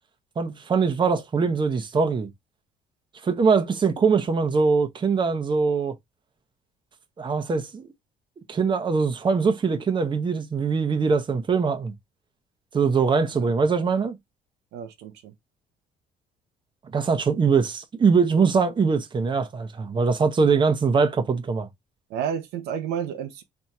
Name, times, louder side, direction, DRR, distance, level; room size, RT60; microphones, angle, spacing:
voice 1, 0.4-2.3 3.2-5.9 7.2-7.9 8.5-11.9 12.7-14.2 16.9-21.7, right 5 dB, 30° right, 0.8 m, -22 dB
voice 2, 14.7-15.3 22.1-23.4, right 8 dB, 85° right, 0.8 m, -31 dB
3.5 x 2.8 x 4.4 m
cardioid pair, 110°, 17 cm